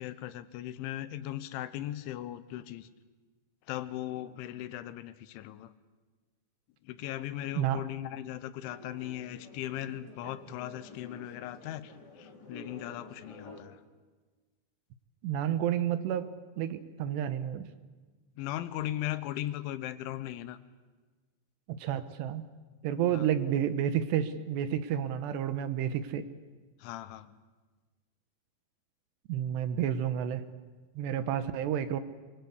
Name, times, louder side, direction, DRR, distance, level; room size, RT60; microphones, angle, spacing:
voice 1, 0.0-2.9 3.7-5.7 6.8-13.8 18.4-20.6 23.1-23.3 26.8-27.4, left 13 dB, 90° left, 13 dB, 3.4 m, -38 dB
sound 1, 8.6-13.6, left 2 dB, 30° left, 2.5 m, -50 dB
voice 2, 15.2-16.3 16.6-17.7 21.7-22.4 22.8-26.3 29.3-30.4 31.0-32.0, right 10 dB, 75° right, 11 dB, 2.9 m, -30 dB
25.5 x 23.0 x 8.3 m, 1.3 s
omnidirectional pair, 5.3 m